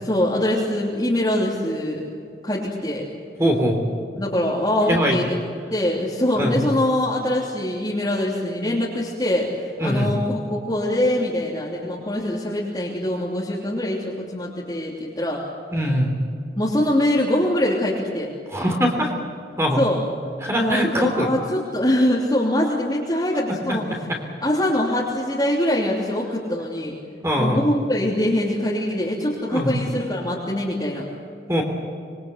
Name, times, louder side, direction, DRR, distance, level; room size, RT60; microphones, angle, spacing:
voice 1, 0.0-2.1 2.4-3.1 4.2-5.4 5.7-15.4 16.6-18.3 19.8-20.0 20.5-24.1 24.4-26.9 27.4-31.0, left 1 dB, 25° left, -6 dB, 3.2 m, -23 dB
voice 2, 3.4-3.8 4.9-5.2 6.4-6.6 9.8-10.2 15.7-16.1 18.5-19.1 19.6-19.8 20.4-21.3 24.1-24.2 27.2-27.6 29.5-29.7 31.5-31.6, equal, 15° right, 2 dB, 3.4 m, -21 dB
26.0 x 22.0 x 8.1 m, 2.4 s
head